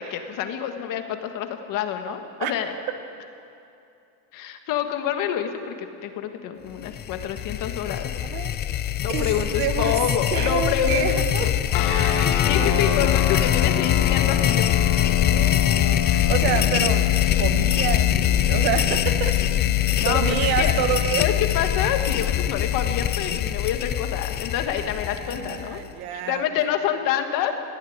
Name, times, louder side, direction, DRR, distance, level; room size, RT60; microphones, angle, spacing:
voice 1, 0.0-2.7 4.3-8.1 9.0-11.7 12.2-14.7 20.0-20.2 20.6-20.7 21.2-25.8 26.1-27.6, left 9 dB, 50° left, 6 dB, 1.7 m, -27 dB
sound 1, 6.8-25.9, left 11 dB, 25° left, 0.4 m, -23 dB
voice 2, 8.2-8.5 9.1-10.0 10.3-11.5 11.9-13.1 15.2-17.1 17.4-19.4 19.8-21.3 25.1-26.5, right 9 dB, 65° right, 8 dB, 1.6 m, -28 dB
sound 2, 11.7-23.5, left 11 dB, 85° left, 1.6 m, -28 dB
20.0 x 13.5 x 9.5 m, 2.7 s
cardioid pair, 170°, 40 cm